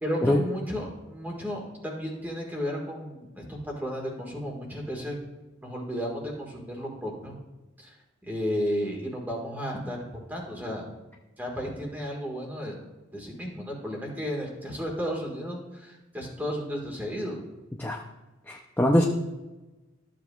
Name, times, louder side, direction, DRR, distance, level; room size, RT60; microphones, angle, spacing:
voice 1, 0.0-5.1 5.6-7.4 7.8-7.9 8.2-10.9 11.4-12.8 13.1-17.4, equal, 10° right, -1 dB, 1.6 m, -33 dB
voice 2, 18.5-19.0, left 1 dB, 10° left, -1 dB, 0.4 m, -22 dB
13.5 x 7.7 x 2.3 m, 1.1 s
head